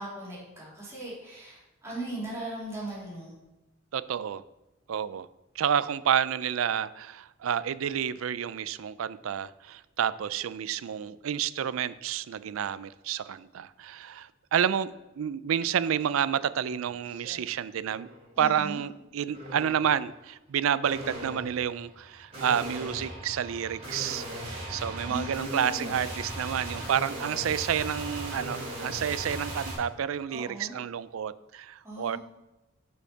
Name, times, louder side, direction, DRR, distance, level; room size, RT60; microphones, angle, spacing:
voice 1, 0.0-3.4 18.4-18.8 25.1-25.9 30.3-30.8 31.8-32.2, right 2 dB, 15° right, -8 dB, 3.1 m, -38 dB
voice 2, 3.9-4.4 4.9-5.3 5.6-18.1 18.4-32.2, right 8 dB, 85° right, 15 dB, 0.4 m, -30 dB
sound 1, 16.0-16.2 16.6-17.3 17.8-18.3 19.3-19.9 20.8-29.7, right 1 dB, 30° right, 2.6 m, -38 dB
6.5 x 5.5 x 5.6 m, 0.99 s
head